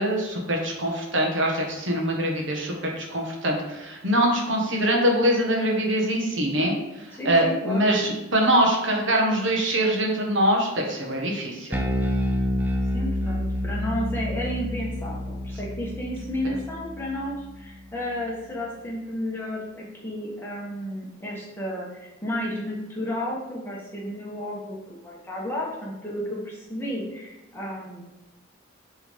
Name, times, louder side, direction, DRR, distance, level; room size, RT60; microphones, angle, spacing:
voice 1, 0.0-11.8, right 1 dB, 70° right, 0 dB, 1.3 m, -23 dB
voice 2, 7.1-8.0 12.9-28.0, left 1 dB, 10° left, -4 dB, 1.2 m, -32 dB
Bass guitar, 11.7-18.2, left 1 dB, 10° right, 0.4 m, -29 dB
8.2 x 3.6 x 3.5 m, 1.0 s
head